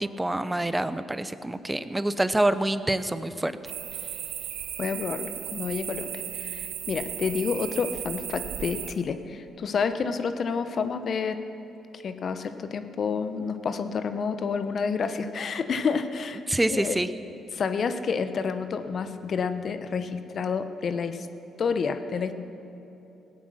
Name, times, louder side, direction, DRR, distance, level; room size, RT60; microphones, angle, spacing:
voice 1, 0.0-3.5 16.5-17.1, right 1 dB, 10° right, 13 dB, 0.6 m, -26 dB
sound 1, 3.7-8.9, right 11 dB, 90° right, 0.8 m, -35 dB
voice 2, 4.8-11.4 12.0-16.4 16.7-17.0 17.5-21.3 21.6-22.3, left 5 dB, 55° left, 10 dB, 0.8 m, -29 dB
16.5 x 8.7 x 6.2 m, 2.9 s
supercardioid pair, 70°, 0 cm